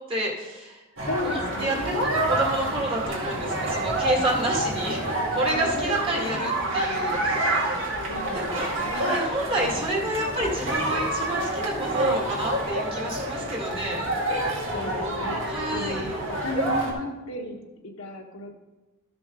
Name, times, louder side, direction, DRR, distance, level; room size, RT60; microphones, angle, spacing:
voice 1, 0.1-0.8 1.3-5.0 5.3-7.9 8.5-8.7 8.9-14.0 15.5-16.1, right 1 dB, 25° right, -2 dB, 2.0 m, -29 dB
voice 2, 1.0-2.0 5.5-6.4 8.1-9.2 9.5-10.3 14.7-18.6, left 1 dB, 70° left, 2 dB, 1.3 m, -35 dB
sound 1, 1.0-16.9, right 1 dB, 60° right, 2.0 m, -28 dB
13.5 x 6.1 x 3.8 m, 1.1 s
head